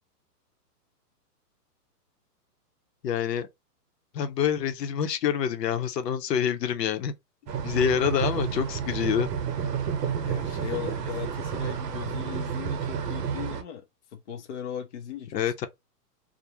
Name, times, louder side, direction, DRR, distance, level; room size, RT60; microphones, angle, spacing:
voice 1, 3.0-3.5 4.1-7.1 7.6-9.3 15.3-15.7, left 8 dB, 90° left, 0.7 m, -26 dB
sound 1, 7.5-13.6, right 7 dB, 80° right, 0.8 m, -30 dB
voice 2, 10.2-13.8 14.1-15.7, left 9 dB, 50° left, 0.5 m, -38 dB
2.5 x 2.1 x 2.8 m
hypercardioid pair, 175°, 48 cm